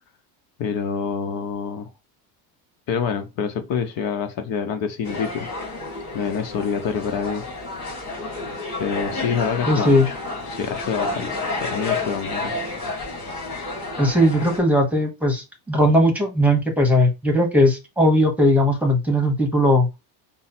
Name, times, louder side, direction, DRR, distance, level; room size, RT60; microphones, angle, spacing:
voice 1, 0.6-1.9 2.9-5.5 6.1-7.4 8.8-10.1 10.5-12.5, left 6 dB, 55° left, 0.9 m, -27 dB
sound 1, 5.0-14.6, left 3 dB, 40° left, 3.0 m, -30 dB
voice 2, 9.7-10.1 14.0-19.9, equal, 5° right, 1.1 m, -18 dB
5.3 x 2.1 x 4.3 m
cardioid pair, 140°, 41 cm